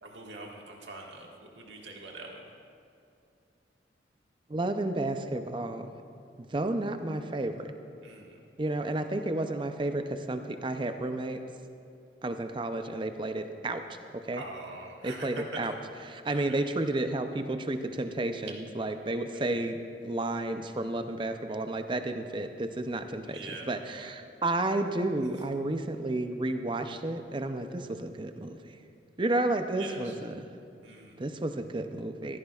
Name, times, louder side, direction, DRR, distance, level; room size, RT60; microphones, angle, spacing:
voice 1, 0.0-1.3 1.5-2.4 8.0-8.4 14.3-15.3 15.6-15.7 16.3-16.6 19.3-19.5 23.3-23.7 29.8-30.1 30.8-31.2, right 2 dB, 80° right, -1 dB, 1.7 m, -44 dB
voice 2, 4.5-5.9 6.5-7.7 8.6-11.4 12.2-14.4 15.0-15.7 16.1-28.8 29.2-30.5 31.2-32.4, right 2 dB, 25° right, 8 dB, 0.5 m, -32 dB
16.0 x 14.5 x 2.4 m, 2.5 s
head